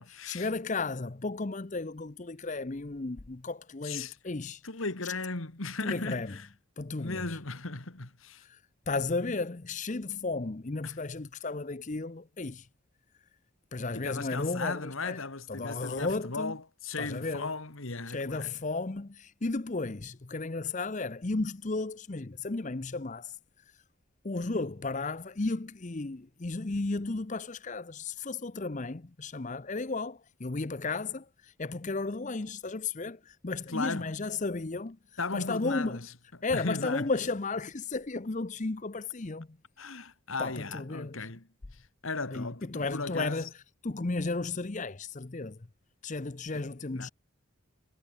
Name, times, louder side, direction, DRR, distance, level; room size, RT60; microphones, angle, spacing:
voice 1, 0.0-4.6 5.0-5.1 5.8-6.3 6.8-7.4 8.4-8.6 8.9-12.7 13.7-15.2 15.5-16.6 17.0-17.5 18.1-23.4 24.2-35.0 35.3-36.0 36.4-39.6 40.4-41.3 42.3-45.7 46.0-47.1, left 3 dB, 35° left, 0.7 m, -34 dB
voice 2, 3.8-4.1 4.6-6.5 7.0-8.4 10.8-11.0 13.9-18.5 33.7-34.1 35.2-36.0 36.5-37.1 39.8-41.5 42.0-43.4 46.5-46.7 46.9-47.1, left 3 dB, 70° left, 2.1 m, -36 dB
head